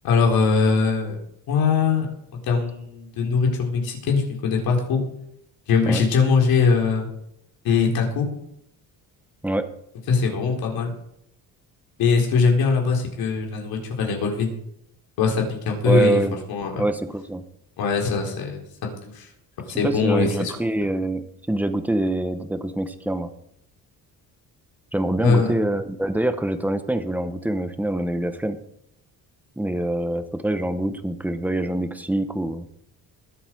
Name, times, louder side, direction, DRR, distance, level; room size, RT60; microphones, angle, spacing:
voice 1, 0.0-1.2 1.5-2.1 2.4-5.0 5.7-7.1 7.6-8.3 10.1-10.9 12.0-14.5 15.2-16.2 16.5-16.8 17.8-19.3 19.7-20.5 25.2-25.6, left 5 dB, 75° left, 1 dB, 4.1 m, -21 dB
voice 2, 15.8-16.4 16.8-17.4 19.8-23.3 24.9-28.6 29.6-32.7, right 1 dB, 5° right, 9 dB, 1.0 m, -25 dB
21.0 x 8.0 x 4.7 m, 0.75 s
cardioid pair, 140°, 36 cm